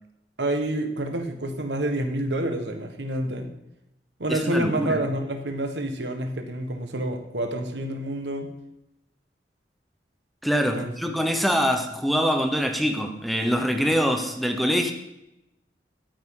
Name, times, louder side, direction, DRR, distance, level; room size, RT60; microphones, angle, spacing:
voice 1, 0.4-3.5 4.2-8.5 10.8-10.9, right 1 dB, 75° right, 6 dB, 1.4 m, -28 dB
voice 2, 4.3-5.0 10.4-14.9, equal, ahead, 5 dB, 0.8 m, -24 dB
12.5 x 9.0 x 3.8 m, 0.88 s
head